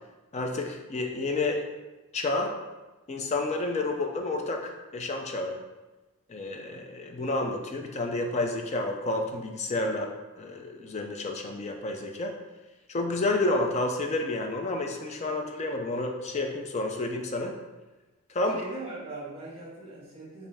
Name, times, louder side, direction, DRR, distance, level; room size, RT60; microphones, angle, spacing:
voice 1, 0.3-1.6 2.1-2.5 3.1-5.6 6.3-12.4 12.9-17.5 18.3-18.6, left 2 dB, 30° left, 3 dB, 0.4 m, -30 dB
voice 2, 18.5-20.5, right 2 dB, 25° right, -6 dB, 1.4 m, -40 dB
5.2 x 2.6 x 3.3 m, 1.1 s
head